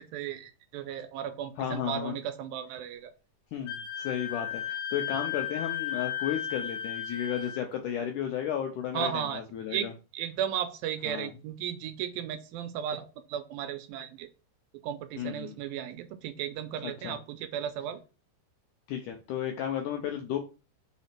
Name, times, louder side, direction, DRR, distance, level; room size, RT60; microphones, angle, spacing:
voice 1, 0.0-3.1 8.9-9.4 9.7-9.9 10.1-14.3 14.8-18.0, right 9 dB, 80° right, 9 dB, 2.3 m, -35 dB
voice 2, 1.6-2.2 3.5-9.9 11.1-11.3 15.2-15.6 16.8-17.2 18.9-20.4, left 9 dB, 80° left, 4 dB, 1.8 m, -33 dB
Wind instrument woodwind instrument, 3.7-7.6, left 10 dB, 40° left, 1.0 m, -34 dB
5.1 x 4.1 x 5.8 m, 0.33 s
omnidirectional pair, 4.4 m